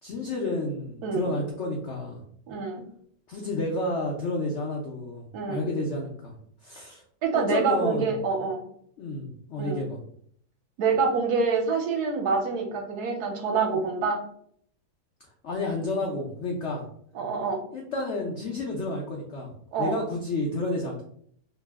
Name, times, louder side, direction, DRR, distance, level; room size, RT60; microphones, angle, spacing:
voice 1, 0.0-2.2 3.3-6.3 6.6-7.0 7.3-8.2 9.0-10.0 15.4-16.8 17.7-19.5 19.8-21.0, left 2 dB, 75° left, 0 dB, 0.6 m, -30 dB
voice 2, 1.0-1.3 2.5-2.8 5.3-5.7 7.2-8.6 9.6-9.8 10.8-14.2 17.1-17.6 19.7-20.0, right 4 dB, 70° right, 2 dB, 1.1 m, -26 dB
2.9 x 2.0 x 3.4 m, 0.63 s
omnidirectional pair, 1.9 m